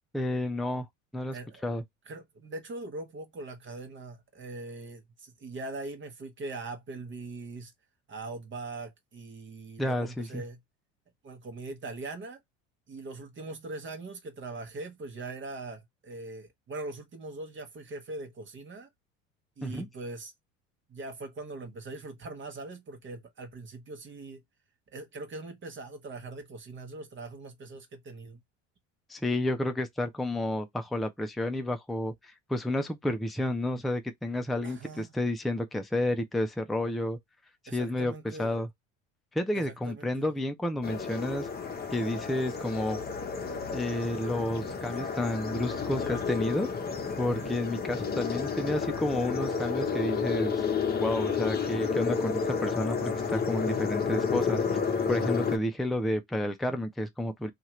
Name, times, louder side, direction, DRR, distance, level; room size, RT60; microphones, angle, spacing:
voice 1, 0.1-0.9 1.1-1.8 9.8-10.4 19.6-19.9 29.1-37.2 37.7-38.1 38.4-38.7 39.3-41.5 41.9-43.0 43.7-46.7 47.2-50.7 51.0-54.8 55.1-57.5, left 1 dB, ahead, 0.5 m, -31 dB
voice 2, 1.3-1.6 2.1-7.7 8.1-10.6 11.2-12.4 12.9-18.9 19.6-20.3 20.9-24.4 24.9-28.4 34.6-35.1 37.7-38.6 39.5-40.3 47.3-47.6, right 2 dB, 30° right, 1.0 m, -41 dB
sound 1, 40.8-55.6, left 5 dB, 25° left, 0.8 m, -31 dB
2.7 x 2.5 x 3.0 m
hypercardioid pair, 80°, 39 cm